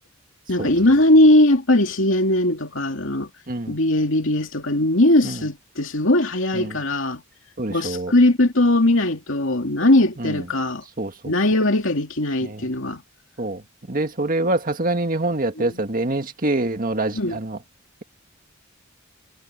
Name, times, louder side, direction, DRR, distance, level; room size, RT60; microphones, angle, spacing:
voice 1, 0.5-3.3 3.7-7.2 7.7-10.8 11.3-13.0 15.6-15.8 17.1-17.4, left 1 dB, 65° left, 2.8 m, -19 dB
voice 2, 3.5-3.8 5.2-5.4 6.5-6.8 7.6-8.1 10.2-10.4 11.0-11.3 12.4-12.7 13.4-13.6 13.9-17.6, right 2 dB, 40° right, 1.8 m, -25 dB
head